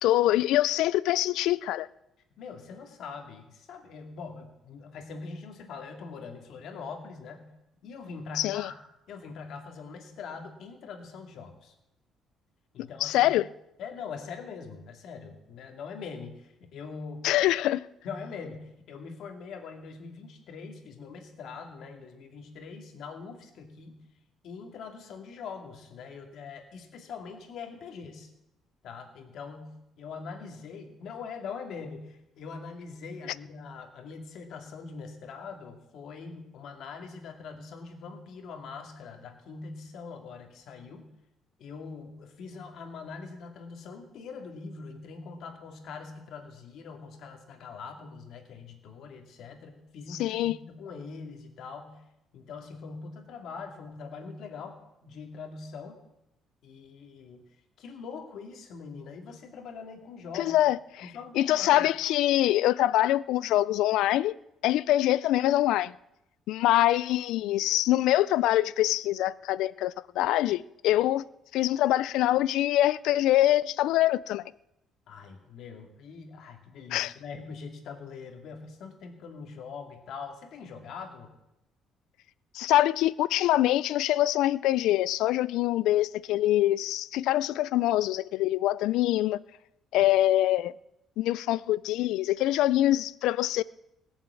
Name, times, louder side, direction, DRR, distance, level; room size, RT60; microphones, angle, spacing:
voice 1, 0.0-1.9 8.4-8.7 13.0-13.5 17.2-17.8 50.2-50.6 60.3-64.3 64.6-66.0 66.5-71.3 71.5-74.4 76.9-77.1 82.5-89.4 89.9-90.7 91.2-93.6, left 14 dB, 85° left, 0.4 m, -24 dB
voice 2, 2.4-7.5 7.8-8.7 9.1-11.7 12.7-13.3 13.8-17.3 18.0-24.0 24.4-28.3 28.8-41.1 41.6-52.0 52.3-54.8 55.0-56.0 56.6-57.4 57.8-60.6 61.0-61.8 75.1-81.3 90.0-90.1, left 5 dB, 60° left, 2.3 m, -42 dB
18.0 x 7.3 x 8.3 m
cardioid pair, 160°, 0 cm